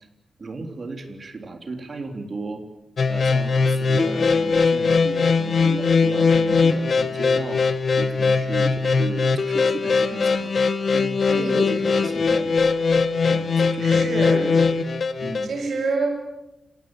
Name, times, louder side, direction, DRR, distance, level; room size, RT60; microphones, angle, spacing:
voice 1, 0.4-2.6 3.1-7.6 8.0-10.5 10.9-12.9 13.2-14.8 15.2-15.5, right 3 dB, 40° right, 5 dB, 3.5 m, -35 dB
sound 1, 3.0-15.5, left 4 dB, 50° left, 1.3 m, -20 dB
voice 2, 11.3-12.1 13.8-14.4 15.4-16.1, right 3 dB, 60° right, 3 dB, 7.8 m, -27 dB
29.5 x 17.0 x 9.1 m, 0.96 s
wide cardioid pair, 155°, 0 cm